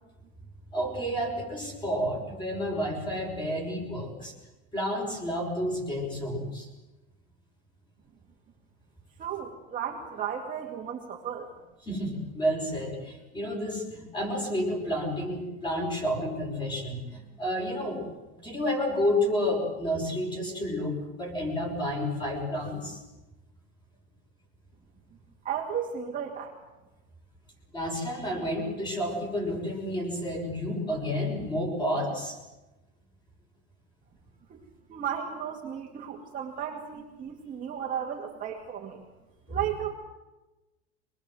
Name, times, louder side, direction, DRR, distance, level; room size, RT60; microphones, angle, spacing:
voice 1, 0.7-4.3 4.7-6.7 11.9-18.0 18.4-23.0 27.7-32.4 39.5-39.6, equal, 15° left, 2 dB, 6.2 m, -30 dB
voice 2, 9.2-11.5 25.4-26.6 34.5-34.6 34.9-39.0 39.5-39.9, right 8 dB, 25° right, -1 dB, 2.3 m, -34 dB
25.0 x 21.0 x 7.8 m, 1.1 s
supercardioid pair, 160°, 33 cm